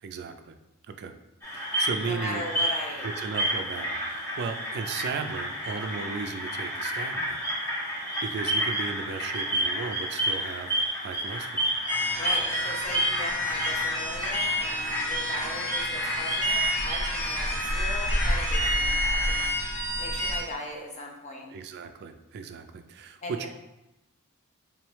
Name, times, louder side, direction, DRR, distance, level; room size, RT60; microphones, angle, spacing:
voice 1, 0.0-0.6 0.9-1.1 1.5-2.4 3.0-7.4 8.2-10.7 11.0-11.7 21.5-23.5, right 5 dB, 50° right, 8 dB, 0.3 m, -35 dB
sound 1, 1.4-19.5, right 1 dB, 15° left, 1.1 m, -31 dB
voice 2, 2.0-3.1 12.1-19.4 20.0-21.5 23.2-23.5, left 1 dB, 30° left, 0 dB, 0.6 m, -38 dB
sound 2, 11.9-20.4, left 1 dB, 85° left, 1.2 m, -29 dB
3.6 x 3.1 x 3.0 m, 0.95 s
head